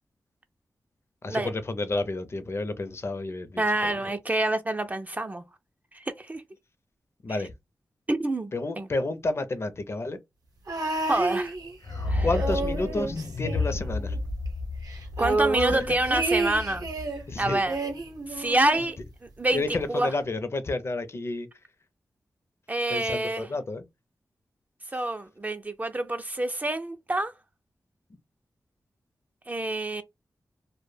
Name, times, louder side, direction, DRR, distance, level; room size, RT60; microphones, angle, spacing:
voice 1, 1.2-3.9 7.2-7.5 8.5-10.2 12.2-14.2 15.7-15.8 17.3-17.6 19.5-21.5 22.9-23.8, left 2 dB, 40° left, 0.4 m, -30 dB
voice 2, 3.6-5.4 5.9-6.4 7.3-7.4 8.1-8.9 11.1-11.5 12.1-12.3 15.2-16.9 17.4-17.8 18.3-19.0 19.4-20.1 22.7-23.5 24.9-27.3 29.5-30.0, right 2 dB, 25° right, 0.3 m, -27 dB
sound 1, 10.7-12.0 12.3-14.2 14.5-14.6 14.8-17.2 17.7-18.9 19.8-19.9, right 2 dB, 70° right, 0.7 m, -30 dB
sound 2, 11.8-17.9, left 3 dB, 75° left, 0.8 m, -32 dB
2.1 x 2.1 x 3.1 m
cardioid pair, 65°, 7 cm